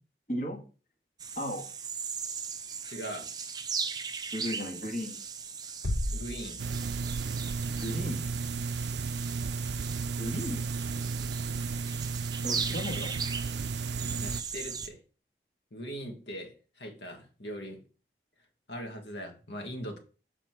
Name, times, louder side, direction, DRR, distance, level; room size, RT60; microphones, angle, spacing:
voice 1, 0.3-0.6 1.3-1.7 4.3-5.2 7.8-8.3 10.2-10.6 12.4-13.1, equal, 45° left, 1.6 m, -35 dB
sound 1, 1.2-14.9, right 6 dB, 20° right, 0.5 m, -38 dB
voice 2, 2.8-3.3 6.1-6.6 12.9-13.1 14.2-15.0 15.7-17.8 18.7-20.0, equal, 85° left, 1.6 m, -40 dB
sound 2, 5.8-7.8, left 1 dB, 65° left, 0.8 m, -35 dB
sound 3, 6.6-14.4, right 4 dB, 80° right, 0.4 m, -34 dB
7.5 x 4.1 x 4.6 m
head